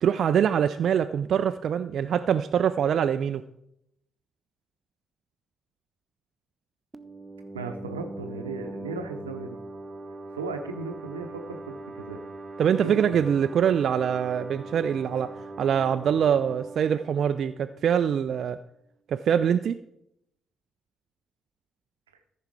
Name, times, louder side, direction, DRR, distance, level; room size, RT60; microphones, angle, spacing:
voice 1, 0.0-3.4 12.6-15.3 15.6-18.6 19.1-19.8, right 8 dB, 55° right, 10 dB, 0.3 m, -24 dB
sound 1, 6.9-18.4, right 2 dB, 25° right, 0.7 m, -41 dB
voice 2, 7.5-9.6 10.3-12.2 12.7-13.3, right 4 dB, 85° right, 6 dB, 0.8 m, -36 dB
14.0 x 5.5 x 4.7 m, 0.80 s
figure-of-eight pair, 40°, 0 cm